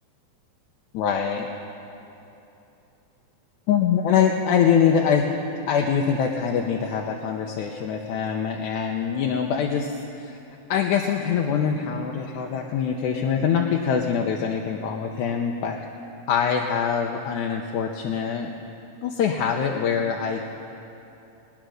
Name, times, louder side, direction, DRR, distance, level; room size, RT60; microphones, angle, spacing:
voice 1, 0.9-1.5 3.7-5.3 5.7-10.4 10.7-15.8 16.3-18.5 19.0-20.4, left 7 dB, 85° left, 1 dB, 2.2 m, -24 dB
20.5 x 10.5 x 6.4 m, 2.9 s
omnidirectional pair, 3.4 m